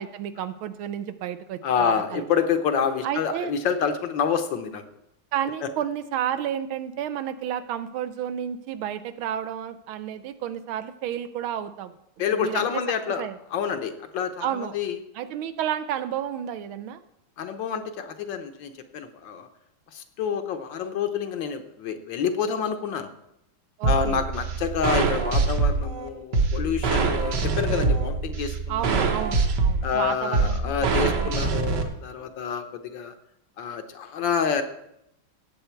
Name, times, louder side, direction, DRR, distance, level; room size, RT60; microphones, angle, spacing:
voice 1, 0.0-2.2 3.0-3.5 5.3-11.9 12.3-12.8 13.2-13.4 14.4-14.7 15.1-17.0 23.8-24.2 28.7-31.3, right 10 dB, 80° right, 12 dB, 1.5 m, -31 dB
voice 2, 1.6-4.8 12.2-15.0 17.4-19.5 19.9-23.1 23.8-29.3 29.8-33.1 33.6-34.6, left 7 dB, 70° left, 8 dB, 1.5 m, -28 dB
sound 1, 23.8-31.8, right 4 dB, 60° right, 1.6 m, -24 dB
17.0 x 7.8 x 4.5 m, 0.82 s
omnidirectional pair, 2.3 m